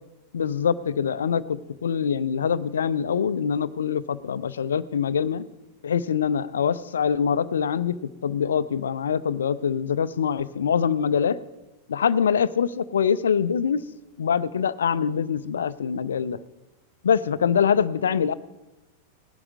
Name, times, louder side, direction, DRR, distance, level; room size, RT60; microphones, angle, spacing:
voice 1, 0.3-5.5 5.8-11.4 11.9-13.9 14.2-16.4 17.0-18.3, left 7 dB, 65° left, 16 dB, 0.5 m, -24 dB
18.5 x 11.5 x 3.6 m, 1.1 s
figure-of-eight pair, 90°, 0 cm